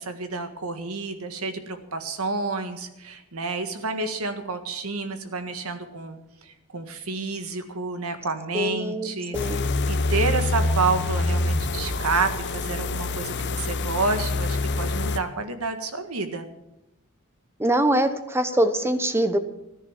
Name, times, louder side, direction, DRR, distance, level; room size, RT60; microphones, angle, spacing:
voice 1, 0.0-9.6 9.9-16.5, right 3 dB, 75° right, 8 dB, 1.7 m, -29 dB
voice 2, 8.5-9.6 17.6-19.4, right 1 dB, 10° right, 10 dB, 1.0 m, -23 dB
sound 1, 9.3-15.2, left 2 dB, 50° left, 0.9 m, -26 dB
14.0 x 10.0 x 7.4 m, 0.89 s
head